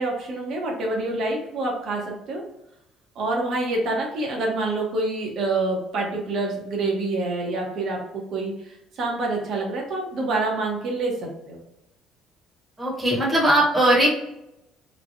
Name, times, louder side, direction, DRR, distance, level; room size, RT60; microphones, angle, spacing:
voice 1, 0.0-2.4 3.1-11.6, right 2 dB, 55° right, 0 dB, 0.9 m, -27 dB
voice 2, 12.8-14.1, right 1 dB, 15° right, -4 dB, 1.1 m, -19 dB
3.1 x 2.2 x 2.6 m, 0.86 s
cardioid pair, 135°, 0 cm